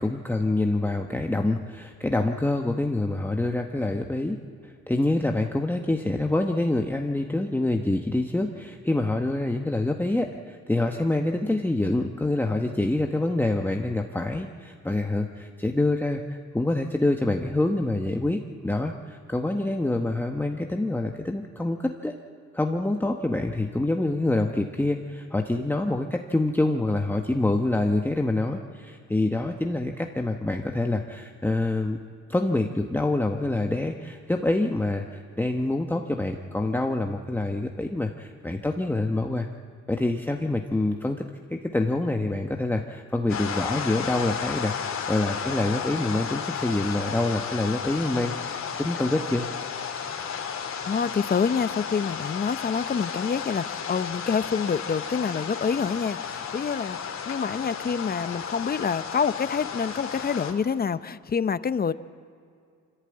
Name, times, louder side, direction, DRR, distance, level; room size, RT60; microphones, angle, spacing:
voice 1, 0.0-4.4 4.6-22.2 22.5-32.0 32.3-39.5 39.9-41.2 41.5-49.5, left 2 dB, 5° left, 3 dB, 1.0 m, -26 dB
sound 1, 43.3-60.5, left 7 dB, 65° left, 2.9 m, -33 dB
voice 2, 50.8-57.0 57.3-61.9, left 6 dB, 30° left, 14 dB, 0.7 m, -27 dB
24.5 x 15.0 x 8.8 m, 2.3 s
cardioid pair, 90°, 30 cm